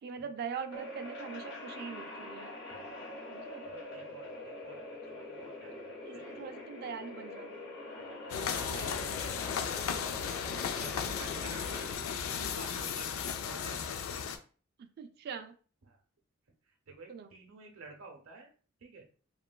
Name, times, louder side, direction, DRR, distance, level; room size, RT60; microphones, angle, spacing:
voice 1, 0.0-2.5 3.3-3.6 6.1-7.6 8.6-9.5 14.8-15.5 17.1-17.3, right 6 dB, 50° right, 7 dB, 0.3 m, -43 dB
sound 1, 0.7-11.9, left 2 dB, 60° left, 0.8 m, -44 dB
voice 2, 3.7-5.8 6.4-6.5 8.0-8.9 10.8-13.1 13.4-13.8 16.9-18.5 18.8-19.1, right 3 dB, 80° right, 3 dB, 0.7 m, -51 dB
sound 2, 8.3-14.4, left 7 dB, 75° left, 0.3 m, -35 dB
3.0 x 2.2 x 2.2 m, 0.39 s
head